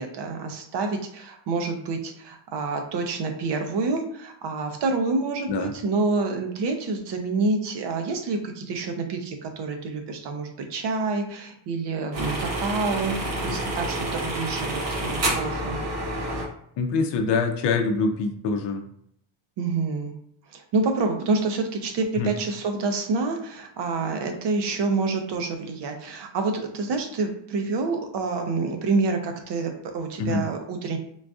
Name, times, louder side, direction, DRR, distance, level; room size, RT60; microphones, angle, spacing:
voice 1, 0.0-15.8 19.6-20.1 20.5-31.0, right 3 dB, 60° right, 4 dB, 0.7 m, -27 dB
sound 1, 12.1-16.4, right 1 dB, 85° right, 1.5 m, -28 dB
voice 2, 16.8-18.8 22.2-22.3 30.2-30.4, left 4 dB, 60° left, 5 dB, 0.6 m, -24 dB
3.9 x 2.5 x 2.4 m, 0.69 s
cardioid pair, 125°, 48 cm